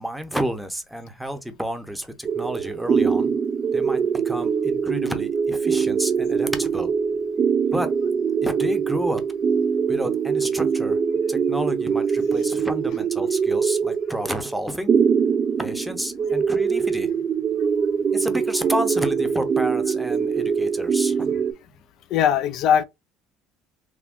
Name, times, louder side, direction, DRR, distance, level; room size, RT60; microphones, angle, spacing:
voice 1, 0.0-3.3 3.7-4.0 4.3-6.9 7.7-7.9 8.4-9.2 9.9-11.0 11.3-14.9 15.6-17.1 18.1-21.3, equal, ahead, 0.7 m, -30 dB
sound 1, 2.2-21.5, right 6 dB, 35° right, 0.3 m, -23 dB
voice 2, 16.2-16.9 17.6-17.7 18.1-18.5 18.7-18.9 21.3-21.4 22.1-22.8, left 9 dB, 60° left, 0.4 m, -25 dB
3.5 x 2.2 x 2.5 m
supercardioid pair, 105°, 0 cm